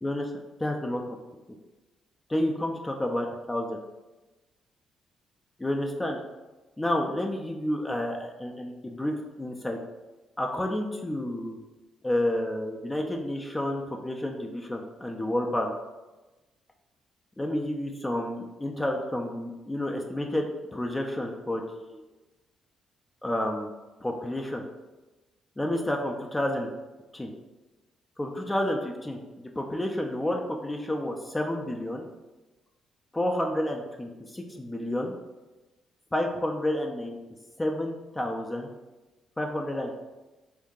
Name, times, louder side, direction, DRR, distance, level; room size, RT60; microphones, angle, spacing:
voice 1, 0.0-0.3 0.6-1.2 2.3-3.8 5.6-6.2 6.8-9.8 10.4-11.6 12.0-15.7 17.4-20.5 20.7-22.0 23.2-23.7 24.0-24.6 25.6-26.7 27.1-27.3 28.2-29.2 29.6-32.0 33.1-35.1 36.1-37.2 37.6-38.7 39.4-40.0, left 1 dB, 10° left, 1 dB, 0.4 m, -30 dB
3.5 x 2.7 x 3.7 m, 1.1 s
cardioid pair, 125°, 0 cm